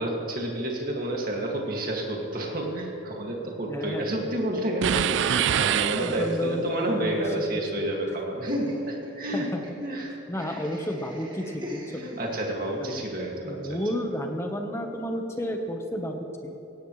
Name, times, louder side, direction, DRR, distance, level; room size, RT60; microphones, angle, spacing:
voice 1, 0.0-9.5 9.7-10.6 11.9-13.8, right 1 dB, 45° right, -1 dB, 2.3 m, -30 dB
voice 2, 3.7-4.1 6.0-7.2 7.8-7.9 9.3-9.6 10.3-11.8 12.8-13.1 13.4-16.6, equal, 15° left, 3 dB, 1.1 m, -31 dB
sound 1, 4.8-6.6, right 9 dB, 65° right, 0.3 m, -25 dB
Laughter, 8.5-12.7, left 1 dB, 20° right, 1.8 m, -42 dB
17.0 x 17.0 x 3.3 m, 3.0 s
head